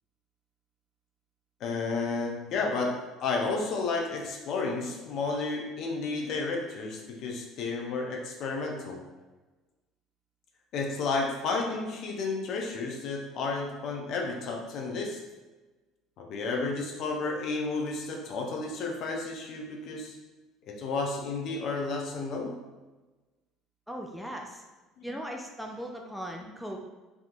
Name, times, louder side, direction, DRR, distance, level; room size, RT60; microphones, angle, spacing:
voice 1, 1.6-9.0 10.7-15.2 16.2-20.2 20.7-22.5 25.0-25.1, left 3 dB, 50° left, 1 dB, 0.5 m, -32 dB
voice 2, 23.9-24.6 25.0-26.8, equal, ahead, 1 dB, 0.4 m, -38 dB
3.4 x 2.8 x 2.4 m, 1.2 s
figure-of-eight pair, 60°, 0 cm